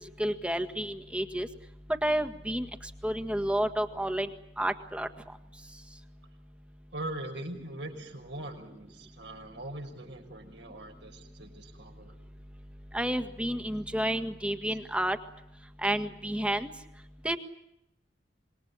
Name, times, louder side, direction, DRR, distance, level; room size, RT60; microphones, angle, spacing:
voice 1, 0.2-1.5 2.0-2.7 3.0-4.3 4.6-5.1 12.9-15.2 15.8-16.7 17.2-17.4, right 1 dB, 5° right, 8 dB, 1.7 m, -30 dB
voice 2, 6.9-12.1, right 1 dB, 75° right, 4 dB, 6.0 m, -41 dB
26.5 x 22.0 x 8.7 m, 0.84 s
head